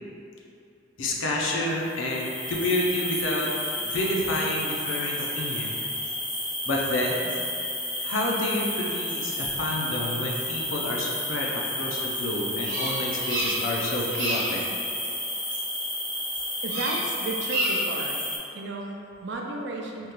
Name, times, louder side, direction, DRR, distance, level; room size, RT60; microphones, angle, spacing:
voice 1, 1.0-3.5 3.8-6.1 6.7-7.3 8.0-14.6, left 1 dB, 90° left, -2 dB, 0.6 m, -29 dB
sound 1, 1.8-18.4, left 1 dB, 25° left, 1.1 m, -31 dB
Bird vocalization bird call bird song, 12.6-13.8 14.1-14.6 16.6-17.1 17.4-18.0, right 1 dB, 85° right, 0.9 m, -29 dB
voice 2, 16.6-18.2 18.5-20.1, right 2 dB, 65° right, 0 dB, 0.4 m, -33 dB
3.6 x 2.9 x 2.9 m, 2.7 s
head